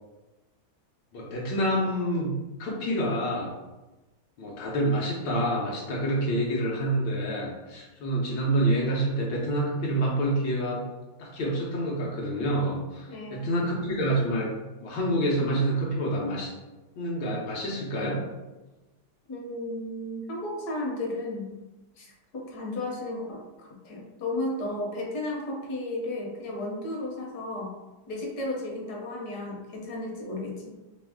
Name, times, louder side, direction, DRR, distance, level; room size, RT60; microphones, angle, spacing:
voice 1, 1.1-2.3 2.6-3.5 4.4-10.9 11.2-14.5 14.8-16.5 17.0-18.2, right 1 dB, 85° left, -3 dB, 1.5 m, -27 dB
voice 2, 13.1-13.6 19.3-21.6 22.0-27.8 28.1-30.7, left 1 dB, 65° left, -1 dB, 1.4 m, -34 dB
3.5 x 3.1 x 3.5 m, 1.1 s
omnidirectional pair, 1.9 m